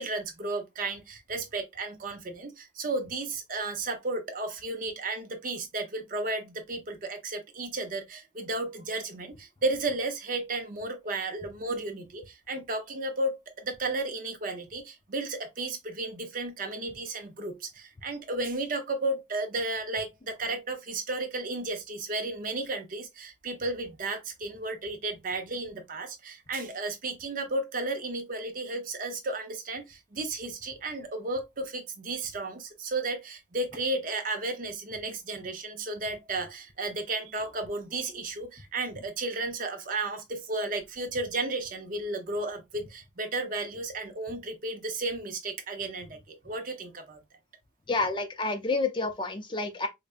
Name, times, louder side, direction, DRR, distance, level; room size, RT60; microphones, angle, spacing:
voice 1, 0.0-47.2, right 2 dB, 45° right, 0.7 m, -33 dB
voice 2, 47.9-49.9, left 3 dB, 25° left, 0.5 m, -29 dB
4.9 x 2.1 x 2.4 m
head